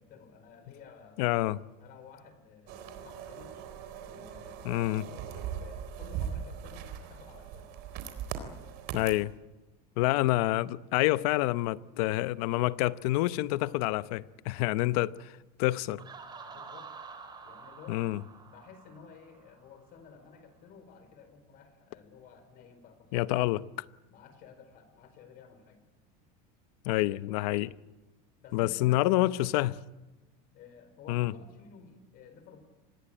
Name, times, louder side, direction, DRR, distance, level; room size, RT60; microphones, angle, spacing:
voice 1, 0.0-1.2 1.8-3.6 4.0-7.7 14.7-14.8 16.4-17.0 17.4-23.2 24.1-25.8 28.4-29.4 30.5-32.6, left 6 dB, 50° left, 4.4 m, -53 dB
voice 2, 1.2-1.6 4.6-5.0 8.9-9.3 10.0-15.1 15.6-16.0 17.9-18.2 23.1-23.6 26.8-27.7 28.5-29.8 31.1-31.3, left 17 dB, 75° left, 0.9 m, -27 dB
sound 1, 2.7-9.2, right 8 dB, 60° right, 3.8 m, -40 dB
Laughter, 16.0-19.7, right 5 dB, 20° right, 3.6 m, -48 dB
26.0 x 20.5 x 8.8 m
cardioid pair, 145°, 20 cm